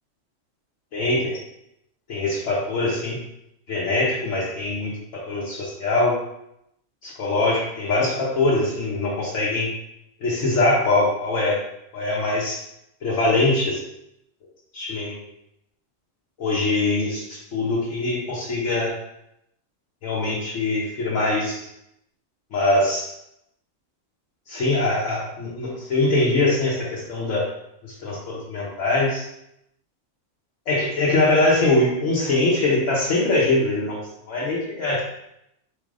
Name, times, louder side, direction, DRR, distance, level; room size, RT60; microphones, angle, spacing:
voice 1, 0.9-1.3 2.1-3.2 3.7-6.2 7.0-9.7 10.2-11.6 11.9-12.6 13.0-13.8 14.7-15.3 16.4-18.9 20.0-21.7 22.5-23.1 24.5-27.4 27.8-29.2 30.7-34.0 34.3-35.0, left 2 dB, 70° left, -6 dB, 1.2 m, -22 dB
4.3 x 3.4 x 3.7 m, 0.81 s
omnidirectional pair, 1.4 m